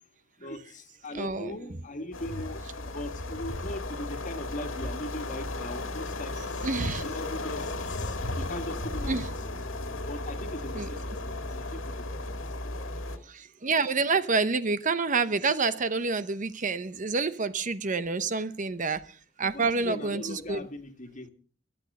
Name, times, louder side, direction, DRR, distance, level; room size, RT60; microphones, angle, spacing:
voice 1, 0.4-9.4 9.9-12.9 19.4-21.3, left 1 dB, 40° left, 7 dB, 1.8 m, -40 dB
voice 2, 1.1-1.6 6.6-7.0 9.1-9.2 10.7-10.9 13.3-19.0 19.4-20.6, right 4 dB, 40° right, 13 dB, 0.8 m, -28 dB
sound 1, 2.1-13.2, left 2 dB, 75° left, 2.0 m, -35 dB
23.0 x 8.7 x 5.4 m, 0.44 s
head